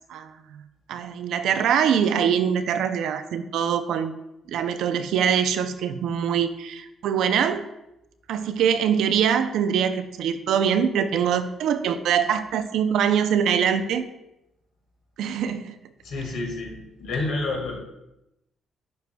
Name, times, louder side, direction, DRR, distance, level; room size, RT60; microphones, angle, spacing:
voice 1, 0.1-0.6 0.9-4.1 4.5-7.7 8.3-14.1 15.2-15.8, right 8 dB, 80° right, 10 dB, 0.4 m, -23 dB
voice 2, 16.0-17.8, left 2 dB, 80° left, 0 dB, 1.7 m, -29 dB
10.5 x 4.6 x 2.2 m, 0.88 s
cardioid pair, 90°, 0 cm